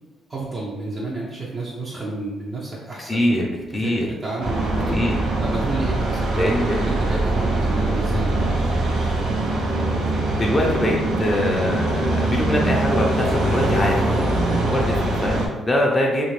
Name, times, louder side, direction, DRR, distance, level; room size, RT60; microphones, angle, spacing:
voice 1, 0.3-3.2 3.8-5.0 5.4-8.5, right 2 dB, 35° right, -5 dB, 0.5 m, -30 dB
voice 2, 3.1-4.1 4.9-5.2 6.3-6.8 10.0-16.3, left 1 dB, 20° left, -2 dB, 0.5 m, -23 dB
sound 1, 4.4-15.5, right 2 dB, 85° right, 0.6 m, -22 dB
2.5 x 2.5 x 3.1 m, 1.1 s
cardioid pair, 90°, 0 cm